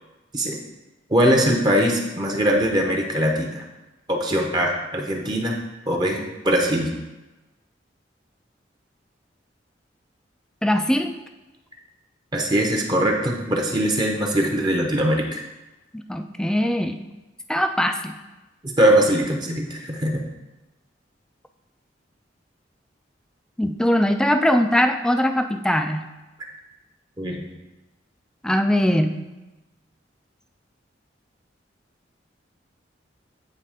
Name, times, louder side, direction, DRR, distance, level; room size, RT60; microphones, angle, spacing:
voice 1, 1.1-3.6 4.1-5.6 5.9-6.9 12.3-15.4 18.8-20.2 27.2-27.4, equal, 25° right, 1 dB, 0.7 m, -21 dB
voice 2, 10.6-11.1 15.9-17.0 17.5-18.2 23.6-26.1 28.4-29.3, equal, 5° left, 7 dB, 0.3 m, -21 dB
8.6 x 3.3 x 4.8 m, 1.1 s
head